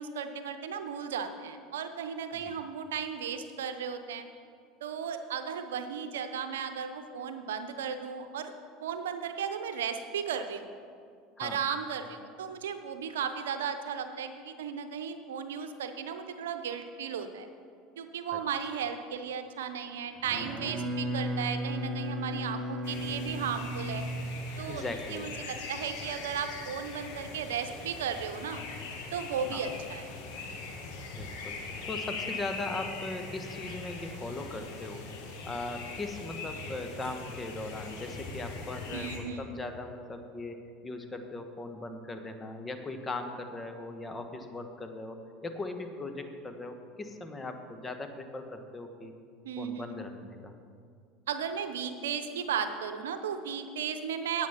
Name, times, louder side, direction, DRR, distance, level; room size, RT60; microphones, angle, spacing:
voice 1, 0.0-4.3 4.8-8.5 8.8-10.7 11.4-17.5 18.0-24.0 24.6-24.8 25.1-28.6 29.1-30.1 38.9-39.6 49.4-50.0 51.3-54.5, right 7 dB, 85° right, 8 dB, 0.7 m, -35 dB
Bowed string instrument, 20.2-24.5, equal, 35° right, 3.0 m, -35 dB
sound 1, 22.8-39.2, left 4 dB, 70° left, 2.0 m, -41 dB
voice 2, 24.7-25.3 29.5-29.7 31.1-31.6 31.9-35.0 35.4-49.1 49.6-50.5, left 2 dB, 20° left, 7 dB, 1.2 m, -39 dB
9.5 x 8.7 x 5.8 m, 2.3 s
hypercardioid pair, 85°, 0 cm